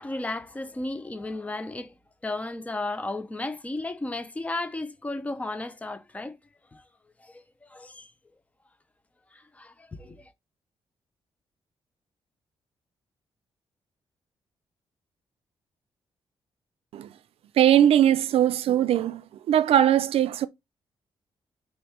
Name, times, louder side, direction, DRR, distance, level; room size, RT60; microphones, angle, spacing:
voice 1, 0.0-1.9 2.2-6.3 6.7-6.8 7.2-8.1 9.3-10.2, left 2 dB, 15° left, 0.7 m, -34 dB
voice 2, 17.6-19.2 19.5-20.5, right 10 dB, 75° right, 0.6 m, -20 dB
5.3 x 4.2 x 4.4 m
wide cardioid pair, 180°, 10 cm